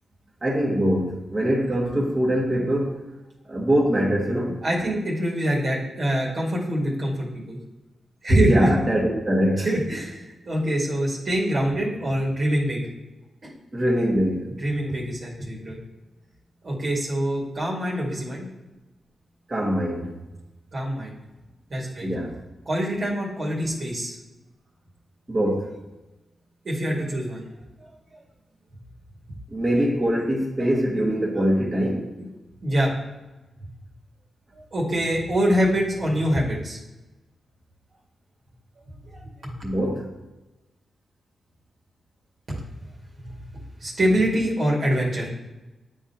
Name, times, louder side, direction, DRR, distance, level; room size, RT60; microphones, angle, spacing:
voice 1, 0.4-3.0 3.4-4.6 8.3-9.7 13.7-14.5 19.5-20.1 22.0-22.4 25.3-25.7 29.5-32.1 39.6-40.1, equal, 30° right, 1.6 m, -23 dB
voice 2, 4.6-7.6 8.2-8.7 9.6-12.8 13.4-13.5 14.5-15.8 16.6-18.5 20.7-21.2 21.7-22.1 22.7-24.2 26.6-27.4 28.1-28.2 30.6-30.7 32.2-32.3 32.6-32.9 34.6-36.8 39.0-39.5 42.5-42.6 43.2-45.3, right 1 dB, 55° right, 2.1 m, -25 dB
9.4 x 3.8 x 2.9 m
cardioid pair, 75°, 0 cm